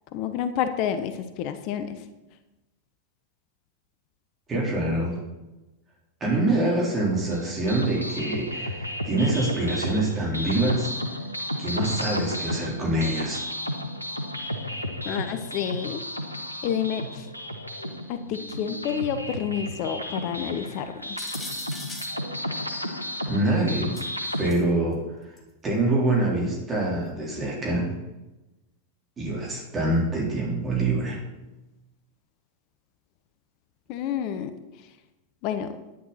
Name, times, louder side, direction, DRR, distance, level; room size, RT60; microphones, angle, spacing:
voice 1, 0.1-2.1 15.1-16.0 16.6-17.3 18.1-21.2 33.9-34.5 35.4-35.7, left 9 dB, 40° left, 10 dB, 0.8 m, -29 dB
voice 2, 4.5-5.2 6.2-10.9 11.6-13.4 23.3-24.0 24.4-25.4 25.6-27.8 29.2-31.2, right 2 dB, 20° right, -3 dB, 3.6 m, -25 dB
sound 1, 7.3-24.5, equal, 85° left, 1.1 m, -33 dB
sound 2, 21.2-22.1 23.9-24.6 25.4-25.5 27.1-27.2, left 2 dB, 10° left, 2.3 m, -39 dB
10.5 x 10.5 x 4.2 m, 1.0 s
figure-of-eight pair, 90°, 0 cm